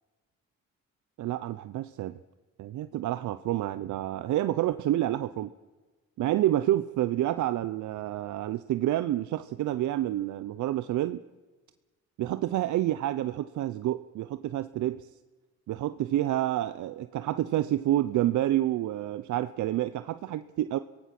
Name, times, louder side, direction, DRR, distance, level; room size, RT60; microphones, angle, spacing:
voice 1, 1.2-2.2 2.6-5.5 6.2-11.2 12.2-15.1 15.7-20.8, right 13 dB, 75° right, 12 dB, 0.7 m, -28 dB
26.0 x 17.5 x 6.0 m, 1.3 s
cardioid pair, 90°, 30 cm